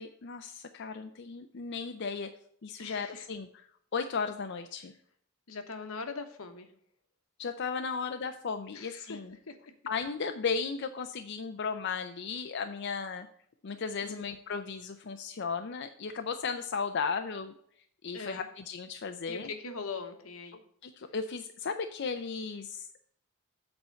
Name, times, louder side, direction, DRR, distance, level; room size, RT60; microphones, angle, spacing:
voice 1, 0.0-2.3 2.6-3.7 3.9-4.9 7.4-9.4 9.9-13.3 13.6-17.5 18.0-19.5 20.8-23.0, left 5 dB, 55° left, 7 dB, 0.5 m, -35 dB
voice 2, 2.8-3.3 5.5-6.7 8.7-9.6 14.0-14.3 18.1-18.5 19.3-20.6, left 4 dB, 85° left, 7 dB, 1.1 m, -41 dB
7.9 x 4.4 x 6.9 m, 0.64 s
head